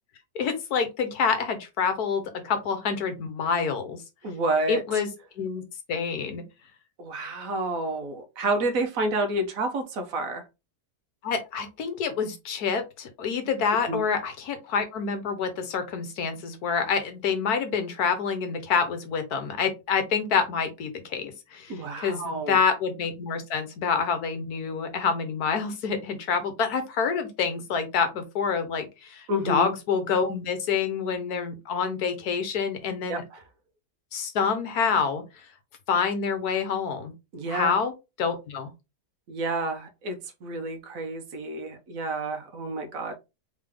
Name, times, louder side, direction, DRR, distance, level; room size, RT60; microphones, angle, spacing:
voice 1, 0.3-4.0 4.7-5.1 5.4-5.6 5.9-6.4 11.2-33.2 34.1-35.2 35.9-37.1 37.5-37.9 38.2-38.7, left 6 dB, 65° left, 1.4 m, -27 dB
voice 2, 4.2-4.8 7.0-10.4 13.7-14.0 21.7-22.6 29.3-29.7 33.1-33.4 37.3-37.7 39.3-43.1, right 2 dB, 60° right, 1.2 m, -29 dB
3.7 x 3.6 x 3.4 m
omnidirectional pair, 1.8 m